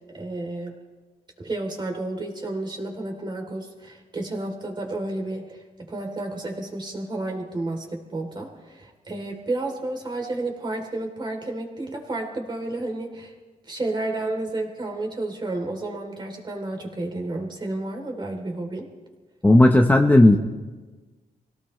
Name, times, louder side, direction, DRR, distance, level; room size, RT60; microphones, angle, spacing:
voice 1, 0.1-0.8 1.4-13.3 13.7-18.9, right 2 dB, 30° right, 2 dB, 3.3 m, -31 dB
voice 2, 19.4-20.4, left 1 dB, 10° left, 3 dB, 0.9 m, -14 dB
25.5 x 17.5 x 3.2 m, 1.3 s
cardioid pair, 105°, 15 cm